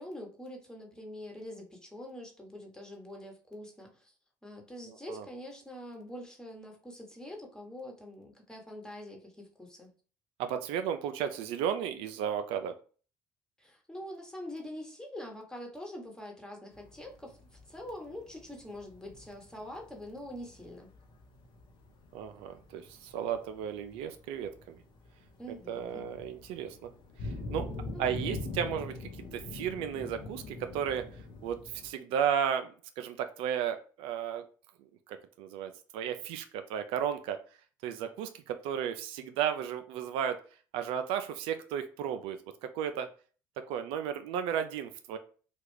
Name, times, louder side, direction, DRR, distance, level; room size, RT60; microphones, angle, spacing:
voice 1, 0.0-4.1 4.4-9.9 13.6-20.9 25.4-26.1 27.6-28.4, left 1 dB, 5° left, 1 dB, 1.2 m, -45 dB
voice 2, 10.4-12.8 22.1-24.8 25.7-26.9 27.2-27.7 28.0-31.1 31.4-34.4 35.1-37.4 37.8-40.4 40.7-43.1 43.7-45.2, right 8 dB, 75° right, 8 dB, 0.4 m, -34 dB
sound 1, 16.7-31.9, left 3 dB, 60° left, 0.8 m, -44 dB
3.2 x 2.3 x 3.2 m, 0.39 s
supercardioid pair, 70°, 9 cm